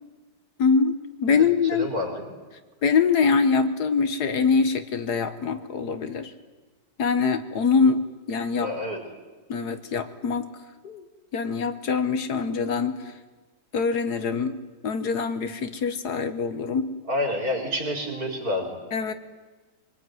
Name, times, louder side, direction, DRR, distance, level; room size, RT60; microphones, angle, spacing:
voice 1, 0.6-1.0 1.2-1.9 2.8-6.3 7.0-8.7 9.5-10.5 10.8-11.0 11.3-13.1 13.7-14.6 14.8-16.9 18.9-19.1, left 5 dB, 65° left, 11 dB, 1.7 m, -24 dB
voice 2, 1.4-2.3 8.6-9.0 17.1-18.8, left 1 dB, 55° right, 2 dB, 4.6 m, -29 dB
24.5 x 19.5 x 9.4 m, 1.2 s
omnidirectional pair, 1.9 m